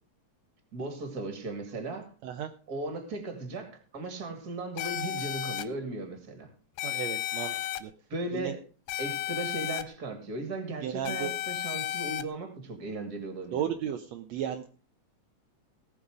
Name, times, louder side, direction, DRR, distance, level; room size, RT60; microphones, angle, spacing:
voice 1, 0.7-2.1 2.7-6.5 8.1-8.6 9.0-13.6, right 2 dB, 35° right, 7 dB, 2.7 m, -37 dB
sound 1, 4.8-5.6 6.8-7.8 8.9-9.8 11.0-12.2, left 13 dB, 85° left, 2.2 m, -33 dB
voice 2, 6.8-7.5 7.8-7.9 8.3-8.5 10.8-11.3 13.5-14.7, right 9 dB, 70° right, 6 dB, 2.0 m, -34 dB
18.0 x 7.0 x 4.9 m, 0.38 s
omnidirectional pair, 3.3 m